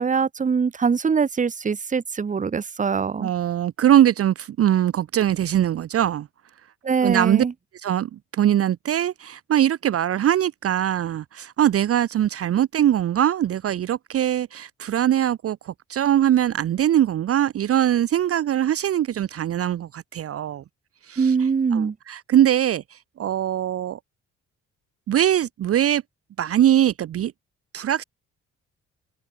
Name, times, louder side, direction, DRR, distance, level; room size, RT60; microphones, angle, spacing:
voice 1, 0.0-3.3 6.8-7.5 21.2-21.9, right 5 dB, 25° right, 0.9 m, -23 dB
voice 2, 3.2-6.3 7.0-7.4 7.8-20.6 21.0-21.3 21.7-24.0 25.1-26.0 26.4-27.3 27.7-28.0, right 11 dB, 50° right, 0.7 m, -22 dB
open air
cardioid pair, 90°, 30 cm